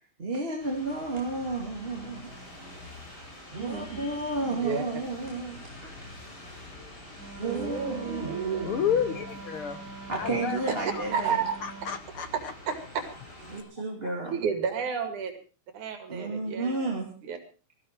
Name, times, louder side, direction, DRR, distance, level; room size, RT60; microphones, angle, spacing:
voice 1, 0.2-2.3 3.5-5.9 7.4-8.8 10.1-11.4 13.5-14.4 16.1-17.1, right 2 dB, 20° right, 0 dB, 2.5 m, -32 dB
sound 1, 0.6-13.6, left 1 dB, 30° left, 6.5 m, -46 dB
voice 2, 3.5-4.1 4.5-4.8 7.4-8.7 10.7-10.8 11.1-11.6 14.3-15.3 15.7-16.9 17.2-17.4, right 6 dB, 90° right, 7 dB, 3.8 m, -31 dB
Wind instrument woodwind instrument, 7.2-12.1, right 4 dB, 50° right, 1.0 m, -44 dB
voice 3, 8.6-9.8 10.2-11.0 11.6-12.5, left 8 dB, 60° left, 11 dB, 1.6 m, -31 dB
19.0 x 14.5 x 4.6 m, 0.35 s
omnidirectional pair, 3.4 m